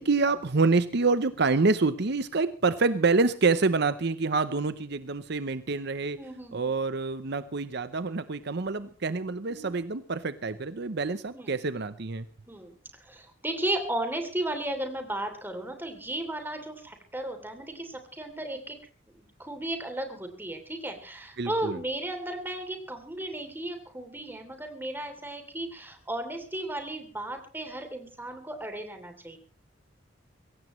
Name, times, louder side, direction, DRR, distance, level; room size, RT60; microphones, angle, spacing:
voice 1, 0.0-6.2 6.5-12.3 21.4-21.8, right 3 dB, 55° right, 13 dB, 0.8 m, -27 dB
voice 2, 6.1-6.7 9.5-9.7 11.3-11.5 12.5-12.7 13.0-18.8 19.1-29.4, right 1 dB, 10° right, 5 dB, 3.1 m, -35 dB
23.0 x 17.0 x 3.2 m, 0.39 s
head